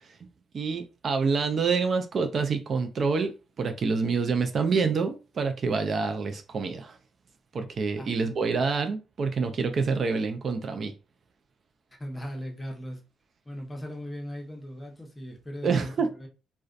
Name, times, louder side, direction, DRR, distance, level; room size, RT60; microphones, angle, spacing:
voice 1, 0.5-7.0 7.5-10.9 15.6-16.1, right 4 dB, 50° right, 0.3 m, -27 dB
voice 2, 12.0-13.0 13.4-16.3, equal, 15° left, 0.8 m, -38 dB
2.4 x 2.1 x 2.4 m
cardioid pair, 90°, 0 cm